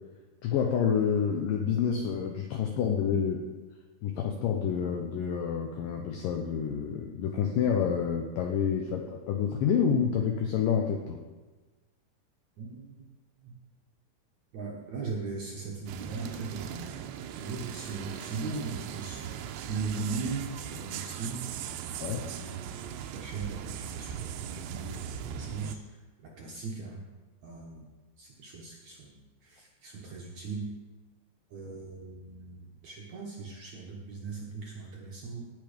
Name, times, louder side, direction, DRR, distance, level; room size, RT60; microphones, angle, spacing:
voice 1, 0.4-3.4 4.0-11.2 22.0-22.2, left 7 dB, 80° left, 3 dB, 2.0 m, -28 dB
voice 2, 12.6-13.0 13.4-13.6 14.5-17.0 17.4-19.3 19.7-21.8 22.1-27.0 27.4-27.9 28.2-30.7 31.5-35.4, right 4 dB, 65° right, -2 dB, 1.9 m, -39 dB
sound 1, 15.9-25.8, right 9 dB, 85° right, 2.8 m, -39 dB
18.5 x 7.1 x 5.1 m, 1.3 s
omnidirectional pair, 5.0 m